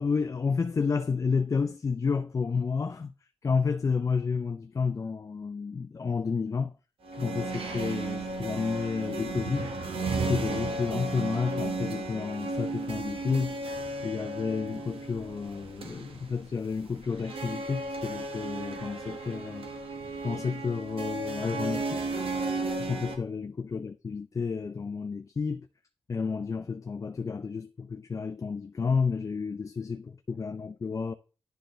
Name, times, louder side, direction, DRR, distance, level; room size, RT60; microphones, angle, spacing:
voice 1, 0.0-3.1 3.4-6.7 7.1-9.8 10.2-13.6 14.0-19.7 20.2-22.1 22.8-25.7 26.1-31.1, left 5 dB, 35° left, 0.4 m, -31 dB
sound 1, 7.0-23.2, right 3 dB, 75° right, 1.1 m, -34 dB
10.0 x 4.5 x 3.1 m
wide cardioid pair, 105°, 10 cm